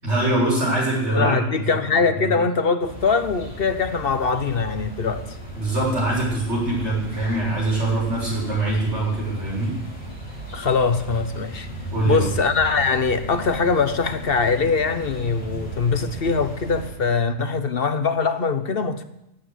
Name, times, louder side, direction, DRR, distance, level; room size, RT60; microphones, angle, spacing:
voice 1, 0.0-1.4 1.8-2.3 5.5-9.7 11.9-12.3, right 2 dB, 60° right, -4 dB, 7.1 m, -23 dB
voice 2, 1.1-5.2 10.5-11.7 12.1-19.0, left 5 dB, 50° left, 10 dB, 1.2 m, -22 dB
sound 1, 2.8-16.9, right 1 dB, 5° left, 6.2 m, -35 dB
16.5 x 8.4 x 8.0 m, 0.86 s
omnidirectional pair, 1.3 m